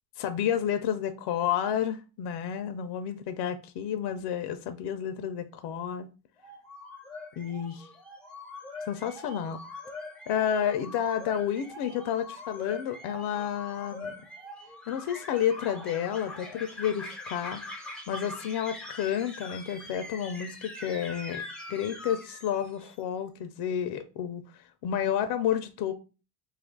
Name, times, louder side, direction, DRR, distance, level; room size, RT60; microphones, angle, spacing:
voice 1, 0.2-6.1 7.4-7.9 8.9-9.6 10.3-14.1 14.9-21.4 21.7-25.9, left 9 dB, 60° left, 0.5 m, -31 dB
sound 1, 6.4-22.9, left 2 dB, ahead, 0.5 m, -43 dB
2.9 x 2.4 x 3.6 m
supercardioid pair, 95°, 48 cm